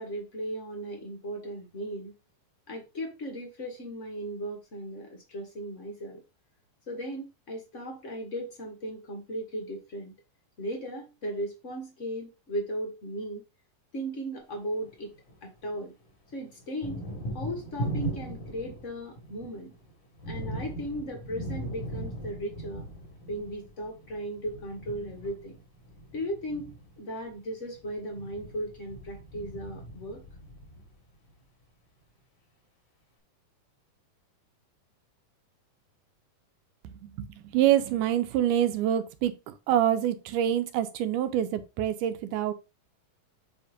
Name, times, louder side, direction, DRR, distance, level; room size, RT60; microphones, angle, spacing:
voice 1, 0.0-2.1 2.7-6.2 6.9-10.1 10.6-13.4 13.9-15.1 15.4-15.9 16.3-17.0 17.3-19.7 20.3-22.8 23.3-25.6 26.1-30.2, equal, 85° left, 0.6 m, -36 dB
Thunder, 14.6-15.8 16.0-31.3, right 1 dB, 65° left, 4.5 m, -39 dB
voice 2, 37.5-42.5, right 11 dB, 80° right, 2.1 m, -26 dB
8.5 x 3.0 x 5.0 m
omnidirectional pair, 3.8 m